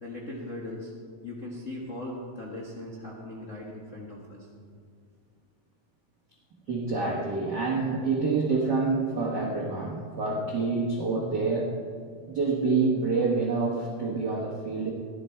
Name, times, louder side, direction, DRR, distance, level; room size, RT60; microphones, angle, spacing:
voice 1, 0.0-0.9 1.2-4.5, left 1 dB, 60° left, -3 dB, 0.7 m, -39 dB
voice 2, 6.7-11.8 12.3-14.9, right 4 dB, 70° right, -3 dB, 1.0 m, -27 dB
15.0 x 12.0 x 4.4 m, 2.1 s
omnidirectional pair, 4.1 m